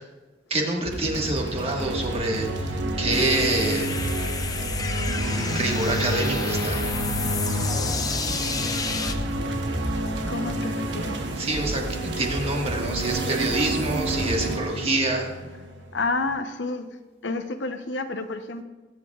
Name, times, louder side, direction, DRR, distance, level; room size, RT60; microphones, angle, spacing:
voice 1, 0.5-3.9 5.1-6.9 11.4-15.3, right 2 dB, 35° right, 1 dB, 1.6 m, -27 dB
sound 1, 0.8-16.2, right 1 dB, 80° right, 1.2 m, -29 dB
sound 2, 3.1-9.1, left 4 dB, 20° left, 0.6 m, -31 dB
voice 2, 10.3-11.1 15.9-16.9 17.2-18.6, left 3 dB, 85° left, 7 dB, 0.8 m, -29 dB
21.0 x 8.3 x 2.4 m, 1.2 s
head